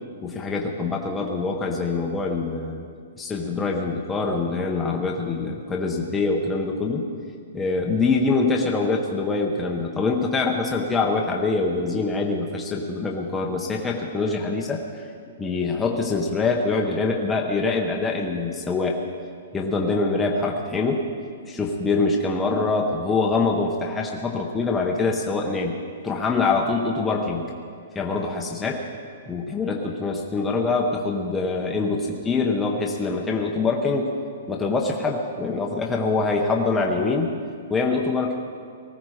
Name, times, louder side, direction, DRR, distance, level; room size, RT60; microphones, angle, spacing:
voice 1, 0.2-2.8 3.2-7.1 7.5-15.1 15.4-21.0 21.5-25.8 26.0-27.5 27.9-28.8 29.3-34.1 34.5-37.3 37.7-38.3, left 3 dB, 5° left, 0 dB, 0.7 m, -24 dB
19.0 x 15.0 x 4.8 m, 2.2 s
hypercardioid pair, 175°, 0 cm